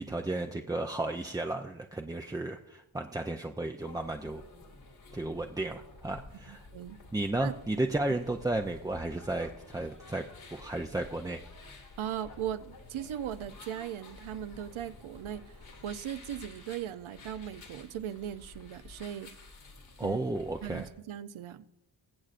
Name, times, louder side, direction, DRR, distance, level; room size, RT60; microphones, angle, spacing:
voice 1, 0.0-4.4 5.1-6.7 7.1-10.2 10.5-11.4 20.0-20.9, right 2 dB, 10° right, 0.3 m, -33 dB
sound 1, 3.8-20.9, left 3 dB, 75° left, 2.1 m, -51 dB
voice 2, 6.5-7.0 7.4-7.5 12.0-19.3 20.0-20.2 20.6-21.6, right 10 dB, 80° right, 0.6 m, -38 dB
22.5 x 7.6 x 2.5 m
cardioid pair, 60°, 48 cm